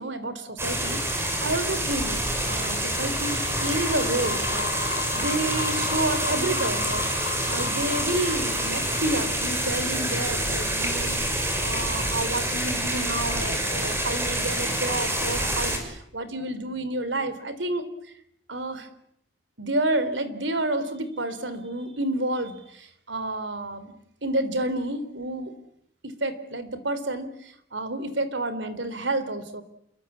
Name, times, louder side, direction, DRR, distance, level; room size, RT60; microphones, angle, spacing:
voice 1, 0.0-17.8 18.5-18.9 19.6-23.9 24.2-25.5 26.0-27.3 27.7-29.6, right 1 dB, 75° right, 12 dB, 3.5 m, -30 dB
sound 1, 0.6-15.8, right 1 dB, 15° right, 6.2 m, -27 dB
sound 2, 0.9-10.3, left 5 dB, 80° left, 2.4 m, -36 dB
28.5 x 23.5 x 8.7 m, 0.74 s
head